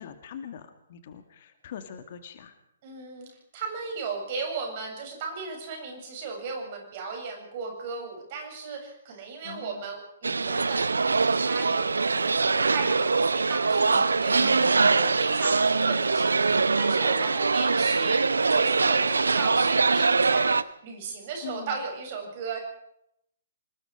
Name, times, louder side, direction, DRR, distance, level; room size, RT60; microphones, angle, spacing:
voice 1, 0.0-2.5 9.4-9.9 13.9-14.0 14.4-14.7 21.4-21.8, left 9 dB, 45° left, 8 dB, 2.2 m, -42 dB
voice 2, 2.8-3.3 3.5-10.9 11.3-22.6, right 4 dB, 40° right, 2 dB, 7.5 m, -36 dB
sound 1, 10.2-20.6, right 4 dB, 70° right, 0.8 m, -23 dB
26.0 x 20.5 x 5.0 m, 0.77 s
figure-of-eight pair, 125°, 0 cm